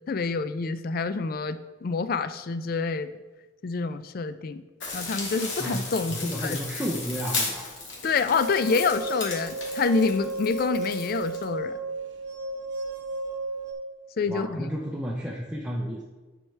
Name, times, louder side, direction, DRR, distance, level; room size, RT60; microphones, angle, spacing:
voice 1, 0.1-3.1 3.6-4.6 4.9-6.6 8.0-11.7 14.2-14.7, left 4 dB, 50° left, 12 dB, 0.3 m, -27 dB
sound 1, 4.8-11.4, left 3 dB, 70° left, 1.9 m, -35 dB
voice 2, 6.1-7.7 14.3-16.0, equal, 5° right, -4 dB, 0.6 m, -32 dB
sound 2, 8.3-13.7, right 1 dB, 60° right, 0.7 m, -33 dB
11.0 x 4.6 x 3.3 m, 1.2 s
head